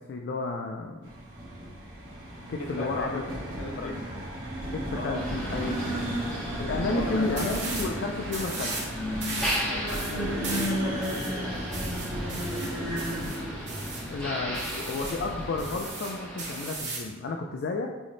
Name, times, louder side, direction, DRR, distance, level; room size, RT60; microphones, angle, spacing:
voice 1, 0.1-1.1 2.5-3.2 3.8-3.9 4.7-6.1 6.6-8.8 14.1-17.9, left 3 dB, 55° left, 1 dB, 0.3 m, -32 dB
sound 1, 1.0-15.9, equal, 75° right, 1.4 m, -34 dB
voice 2, 2.6-3.2 3.6-4.0 4.9-5.2 6.7-7.8 9.6-11.5 12.1-13.9, left 1 dB, 90° left, 0 dB, 0.8 m, -39 dB
Motor vehicle (road), 5.1-16.8, equal, 5° left, 0.7 m, -37 dB
sound 2, 7.4-7.9 8.3-8.9 9.2-14.1 14.5-15.2 15.6-17.1, right 3 dB, 55° right, 1.2 m, -37 dB
6.3 x 2.1 x 3.1 m, 1.2 s
head